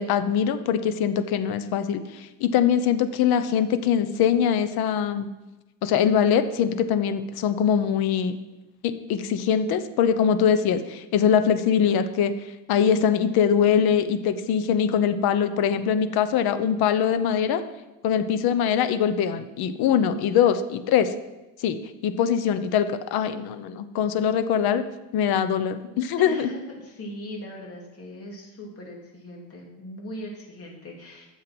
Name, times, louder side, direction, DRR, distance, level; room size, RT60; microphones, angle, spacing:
voice 1, 0.0-5.3 5.8-8.4 8.8-12.3 12.7-17.6 18.0-21.1 21.6-21.8 22.0-24.8 25.1-26.5, left 8 dB, 65° left, 11 dB, 0.9 m, -22 dB
voice 2, 26.2-31.3, left 1 dB, 35° left, -1 dB, 2.9 m, -39 dB
11.5 x 7.5 x 6.1 m, 1.1 s
cardioid pair, 145°, 40 cm